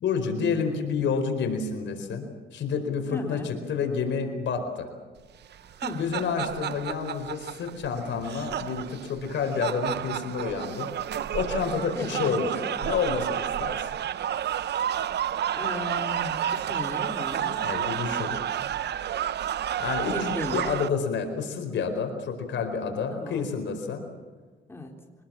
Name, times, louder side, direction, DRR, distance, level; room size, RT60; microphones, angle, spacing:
voice 1, 0.0-4.9 5.9-13.9 17.6-18.4 19.8-24.1, left 5 dB, 70° left, 5 dB, 4.6 m, -29 dB
voice 2, 3.1-3.5 5.8-6.2 11.9-12.4 14.9-15.2 15.5-17.6 20.1-20.6 23.1-23.5 24.7-24.9, left 2 dB, 10° left, 1 dB, 3.8 m, -36 dB
sound 1, 5.4-20.9, right 10 dB, 60° right, 0.7 m, -31 dB
24.5 x 20.0 x 7.5 m, 1.4 s
cardioid pair, 90°, 20 cm